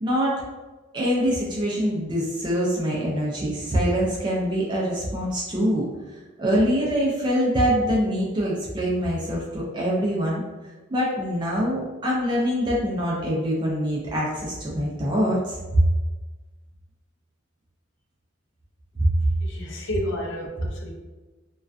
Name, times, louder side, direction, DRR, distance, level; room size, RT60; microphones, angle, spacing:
voice 1, 0.0-0.4 0.9-5.9 6.4-10.4 10.9-15.8 19.0-19.3, equal, 25° right, -4 dB, 0.4 m, -24 dB
voice 2, 19.4-20.9, left 1 dB, 60° left, 0 dB, 0.5 m, -31 dB
2.3 x 2.2 x 2.4 m, 1.2 s
head